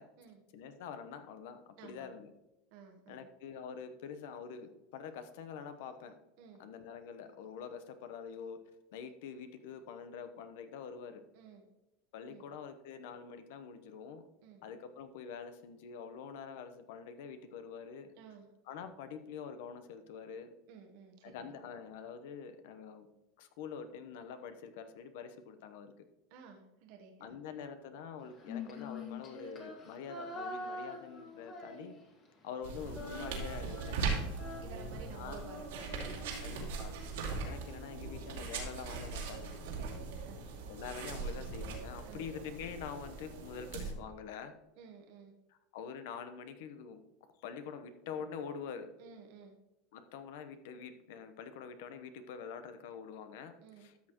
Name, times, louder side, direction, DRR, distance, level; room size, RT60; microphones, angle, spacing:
voice 1, 0.5-2.3 3.1-6.2 6.6-8.6 8.9-11.2 12.1-14.3 14.6-18.1 18.7-20.5 21.2-23.1 23.4-25.9 27.2-32.0 32.4-34.0 35.1-35.4 36.4-36.9 37.4-39.5 40.7-44.6 45.5-48.9 49.9-54.1, left 6 dB, 75° left, 10 dB, 0.9 m, -46 dB
voice 2, 1.8-2.1 2.7-3.2 6.4-6.6 11.3-11.6 12.3-12.4 14.4-14.6 18.2-18.5 20.7-21.5 26.3-27.3 34.1-36.8 39.7-40.5 42.0-42.2 44.8-45.3 49.0-49.6 53.6-53.9, right 6 dB, 65° right, 2 dB, 1.1 m, -54 dB
Female singing, 28.3-32.3 32.5-36.8, left 2 dB, 35° left, 2.0 m, -45 dB
sound 1, 32.6-43.9, right 4 dB, 90° right, 2.4 m, -40 dB
13.0 x 6.5 x 3.0 m, 0.96 s
supercardioid pair, 135°, 0 cm